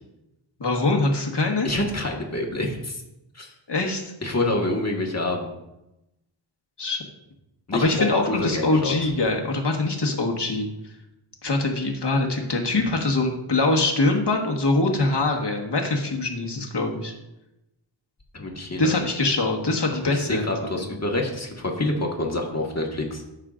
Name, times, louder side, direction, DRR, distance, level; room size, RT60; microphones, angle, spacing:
voice 1, 0.6-1.7 3.7-4.0 6.8-7.0 7.7-10.7 11.4-17.1 18.8-20.5 20.7-20.8, left 2 dB, 55° left, 1 dB, 1.5 m, -23 dB
voice 2, 1.6-3.0 3.3-3.5 4.2-5.5 7.7-8.9 18.3-19.0 20.0-23.2, left 2 dB, 30° left, 0 dB, 1.6 m, -27 dB
13.5 x 6.6 x 2.5 m, 0.92 s
wide cardioid pair, 85°, 48 cm